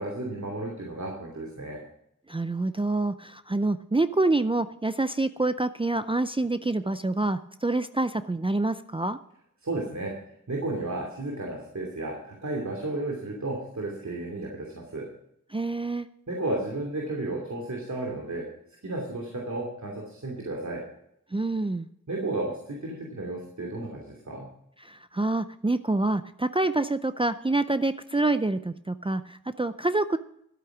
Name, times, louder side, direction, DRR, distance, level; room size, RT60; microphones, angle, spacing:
voice 1, 0.0-1.8 9.6-10.2 10.5-15.1 16.3-18.5 18.8-20.8 22.1-24.6, right 2 dB, 65° right, -2 dB, 2.8 m, -33 dB
voice 2, 2.3-9.2 15.5-16.1 21.3-21.9 24.8-30.2, right 2 dB, 15° right, 11 dB, 0.5 m, -27 dB
12.5 x 8.4 x 6.1 m, 0.75 s
wide cardioid pair, 55°, 31 cm